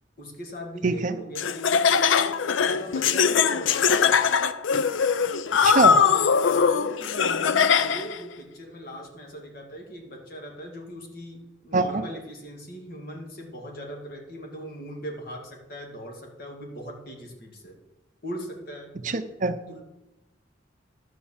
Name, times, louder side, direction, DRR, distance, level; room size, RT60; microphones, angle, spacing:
voice 1, 0.2-4.3 5.6-17.8 18.2-18.9 19.7-19.8, equal, 50° left, 0 dB, 2.1 m, -40 dB
voice 2, 0.8-1.2 5.6-6.0 11.7-12.0 19.0-19.6, right 3 dB, 40° right, 9 dB, 0.6 m, -23 dB
Laughter, 1.4-8.2, left 6 dB, 90° left, 0.5 m, -21 dB
12.0 x 4.6 x 7.1 m, 0.97 s
head